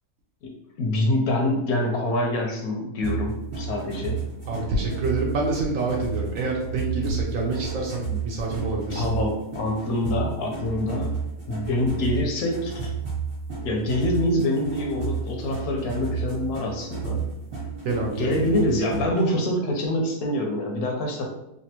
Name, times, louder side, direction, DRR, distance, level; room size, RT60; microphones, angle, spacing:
voice 1, 0.8-4.3 7.1-7.2 8.1-8.2 8.9-11.1 11.5-12.8 13.6-17.3 18.2-21.3, left 1 dB, 70° left, 1 dB, 1.1 m, -25 dB
sound 1, 3.0-19.2, right 5 dB, 40° right, 1.1 m, -32 dB
voice 2, 4.5-9.0 17.8-18.3, right 3 dB, 70° right, -1 dB, 0.9 m, -27 dB
3.2 x 2.4 x 2.8 m, 0.85 s
omnidirectional pair, 1.7 m